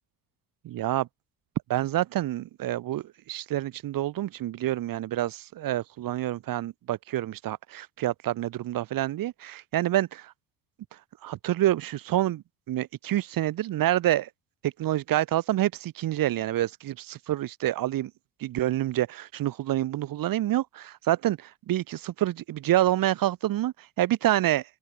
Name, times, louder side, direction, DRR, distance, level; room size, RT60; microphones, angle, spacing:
voice 1, 0.6-1.1 1.7-10.3 11.2-14.3 14.6-18.1 18.4-21.4 21.7-24.6, right 14 dB, 55° right, 1.0 m, -27 dB
supercardioid pair, 80°, 39 cm